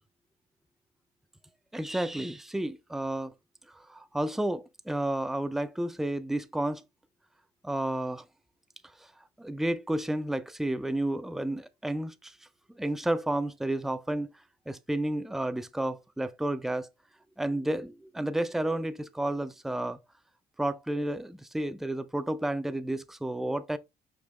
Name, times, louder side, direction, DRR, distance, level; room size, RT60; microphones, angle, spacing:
voice 1, 1.7-3.3 3.7-6.8 7.6-8.2 9.0-9.1 9.4-12.4 12.8-14.3 14.7-16.9 17.4-20.0 20.6-23.8, right 1 dB, ahead, 0.3 m, -31 dB
5.1 x 3.0 x 3.2 m
cardioid pair, 110°, 17 cm